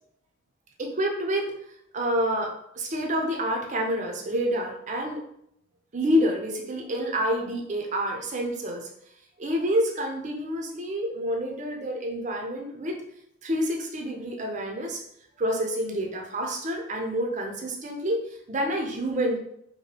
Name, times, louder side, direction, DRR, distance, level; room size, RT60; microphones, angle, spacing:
voice 1, 0.8-1.5 1.9-5.2 5.9-8.9 9.4-13.0 13.4-15.0 15.4-19.4, equal, 35° right, 1 dB, 0.5 m, -28 dB
2.9 x 2.6 x 3.2 m, 0.72 s
head